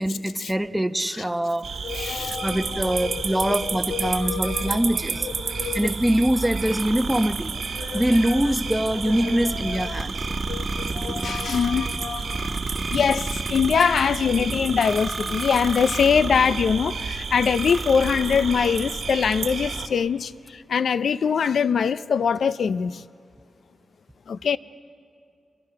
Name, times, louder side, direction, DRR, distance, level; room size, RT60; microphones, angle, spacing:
voice 1, 0.0-5.3 5.7-7.6 7.9-10.2, right 1 dB, 10° right, 0.9 m, -24 dB
sound 1, 1.6-19.9, right 5 dB, 80° right, 1.5 m, -31 dB
voice 2, 1.8-5.0 5.2-5.9 7.8-8.0 9.2-10.0 10.5-23.0 24.3-24.6, left 6 dB, 80° left, 0.4 m, -24 dB
sound 2, 6.4-16.7 17.3-18.9, right 2 dB, 35° right, 1.3 m, -34 dB
26.5 x 22.5 x 5.8 m
cardioid pair, 70°, 0 cm